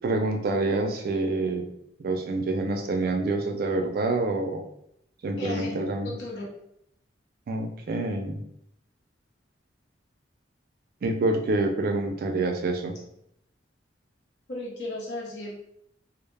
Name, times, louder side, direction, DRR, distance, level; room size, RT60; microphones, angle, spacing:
voice 1, 0.0-1.7 2.0-4.6 5.2-6.1 7.5-8.4 11.0-12.9, right 2 dB, 50° right, 4 dB, 0.3 m, -27 dB
voice 2, 5.4-5.8 6.0-6.5 14.5-15.6, left 1 dB, 65° left, -3 dB, 0.7 m, -35 dB
2.1 x 2.0 x 3.2 m, 0.74 s
head